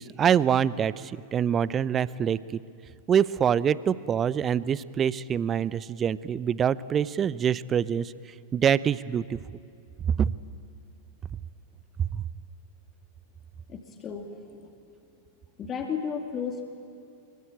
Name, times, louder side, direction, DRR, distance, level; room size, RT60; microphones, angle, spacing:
voice 1, 0.0-2.6 3.1-8.1 8.5-9.4 10.2-10.3 12.1-12.2, right 8 dB, 25° right, 19 dB, 0.6 m, -25 dB
voice 2, 13.7-14.7 15.6-16.6, left 6 dB, 25° left, 3 dB, 2.4 m, -34 dB
24.5 x 23.5 x 9.1 m, 2.5 s
figure-of-eight pair, 90°, 0 cm